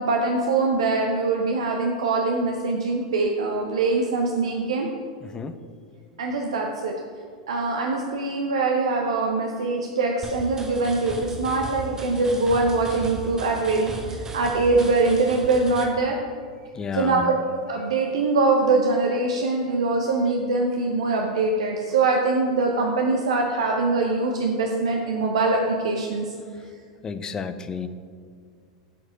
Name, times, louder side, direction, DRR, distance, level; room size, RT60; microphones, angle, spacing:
voice 1, 0.0-4.9 6.2-6.9 7.5-16.2 16.9-17.3 17.7-26.3, right 3 dB, 70° right, 1 dB, 0.7 m, -23 dB
voice 2, 5.2-5.5 16.7-17.3 27.0-27.9, left 5 dB, 20° left, 11 dB, 0.5 m, -31 dB
sound 1, 10.2-15.8, right 2 dB, 20° right, 1.0 m, -37 dB
8.4 x 4.8 x 5.1 m, 2.1 s
figure-of-eight pair, 90°, 3 cm